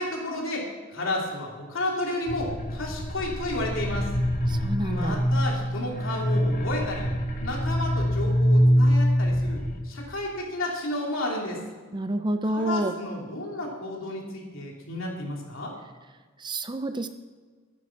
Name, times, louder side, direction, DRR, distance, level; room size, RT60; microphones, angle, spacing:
voice 1, 0.0-4.1 4.7-7.1 7.4-11.6 12.4-15.7, left 1 dB, 70° left, -1 dB, 3.2 m, -32 dB
sound 1, 2.3-9.8, equal, 40° left, 2.0 m, -24 dB
voice 2, 4.5-5.2 11.9-12.9 16.4-17.1, right 1 dB, 20° right, 9 dB, 0.6 m, -28 dB
13.0 x 9.2 x 6.0 m, 1.5 s
head